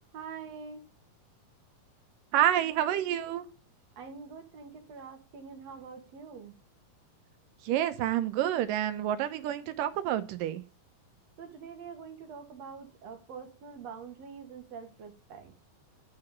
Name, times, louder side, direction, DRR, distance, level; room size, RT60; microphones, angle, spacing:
voice 1, 0.1-0.8 4.0-6.6 11.4-15.5, right 6 dB, 55° right, 5 dB, 2.5 m, -45 dB
voice 2, 2.3-3.5 7.6-10.6, right 11 dB, 90° right, 10 dB, 2.5 m, -28 dB
11.0 x 4.9 x 7.2 m, 0.34 s
omnidirectional pair, 3.8 m